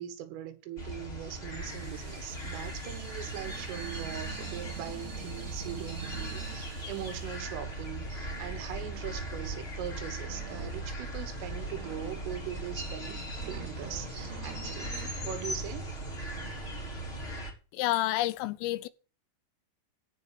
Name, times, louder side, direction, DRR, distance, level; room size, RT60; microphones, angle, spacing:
voice 1, 0.0-14.9 15.2-15.9, right 11 dB, 80° right, 4.0 m, -41 dB
sound 1, 0.8-17.5, right 1 dB, 15° left, 2.6 m, -38 dB
Water tap faucet / Sink (filling or washing), 1.4-9.5, right 6 dB, 55° right, 6.0 m, -52 dB
sound 2, 2.8-15.4, right 5 dB, 40° right, 3.0 m, -49 dB
voice 2, 17.7-18.9, left 16 dB, 85° left, 3.4 m, -29 dB
14.5 x 5.0 x 8.7 m
omnidirectional pair, 5.8 m